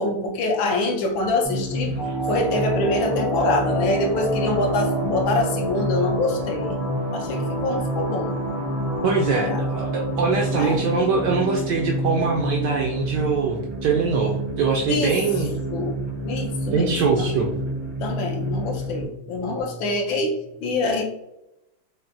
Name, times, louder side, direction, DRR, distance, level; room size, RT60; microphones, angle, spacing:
voice 1, 0.0-2.0 2.3-6.9 7.1-8.4 9.4-9.6 10.5-10.8 14.9-15.2 15.7-16.0 16.2-17.4 18.0-21.0, left 2 dB, 75° left, 2 dB, 1.4 m, -25 dB
sound 1, 1.4-19.0, right 1 dB, 30° right, 0.5 m, -29 dB
sound 2, 2.0-13.0, right 1 dB, 50° left, 1.0 m, -30 dB
voice 2, 9.0-15.5 16.7-17.5, right 4 dB, 75° right, 0 dB, 1.0 m, -23 dB
5.8 x 2.0 x 2.6 m, 0.88 s
omnidirectional pair, 2.3 m